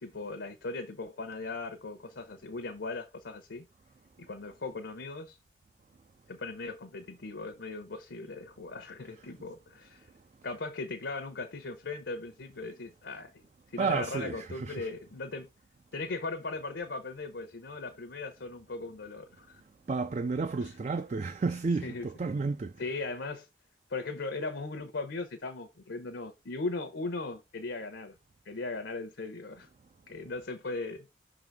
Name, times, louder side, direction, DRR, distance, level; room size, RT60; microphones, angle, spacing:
voice 1, 0.0-3.6 4.3-5.4 6.3-10.1 10.4-13.4 13.7-15.5 15.9-19.6 20.6-20.8 21.8-22.1 22.8-23.5 23.9-28.1 28.4-29.7 30.1-31.1, left 3 dB, 80° left, 0.8 m, -38 dB
voice 2, 13.8-14.9 19.9-22.7, right 4 dB, 40° right, 0.3 m, -31 dB
5.8 x 3.9 x 4.6 m
head